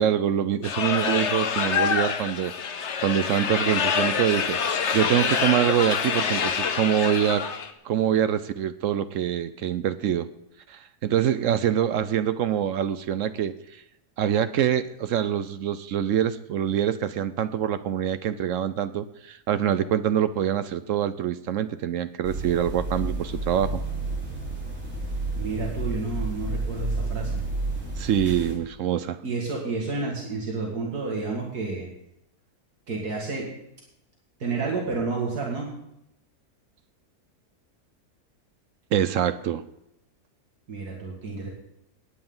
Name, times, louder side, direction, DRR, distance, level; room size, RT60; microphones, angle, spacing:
voice 1, 0.0-2.5 3.0-4.6 4.9-7.4 7.8-10.3 10.7-13.5 14.2-23.8 28.0-29.2 38.9-39.6, right 10 dB, 65° right, 13 dB, 0.9 m, -25 dB
sound 1, 0.6-7.7, left 6 dB, 55° left, 1.1 m, -26 dB
sound 2, 22.2-28.5, right 2 dB, 45° right, 3.6 m, -31 dB
voice 2, 25.4-27.4 29.2-31.9 32.9-33.5 34.4-35.7 40.7-41.5, right 4 dB, 80° right, -3 dB, 2.5 m, -30 dB
18.5 x 9.2 x 3.9 m, 0.81 s
omnidirectional pair, 1.6 m